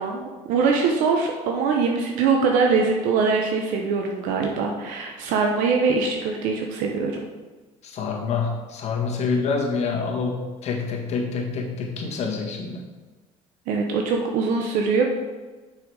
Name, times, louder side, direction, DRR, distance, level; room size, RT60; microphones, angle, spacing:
voice 1, 0.0-7.2 13.7-15.1, right 4 dB, 75° right, 1 dB, 0.9 m, -22 dB
voice 2, 7.8-12.8, left 4 dB, 55° left, 0 dB, 1.8 m, -27 dB
6.3 x 6.0 x 4.9 m, 1.3 s
supercardioid pair, 90°, 14 cm